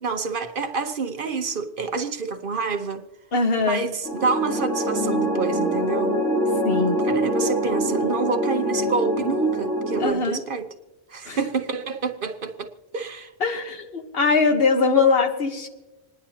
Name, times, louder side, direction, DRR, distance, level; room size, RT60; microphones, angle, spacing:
voice 1, 0.0-3.0 3.6-6.1 7.0-10.7 11.1-13.3, right 4 dB, 50° right, 1.0 m, -28 dB
voice 2, 3.3-3.8 6.6-7.0 10.0-10.4 11.3-11.4 13.4-15.7, left 4 dB, 55° left, 1.4 m, -21 dB
sound 1, 4.0-10.1, equal, ahead, 1.9 m, -24 dB
27.0 x 10.0 x 2.8 m
omnidirectional pair, 1.2 m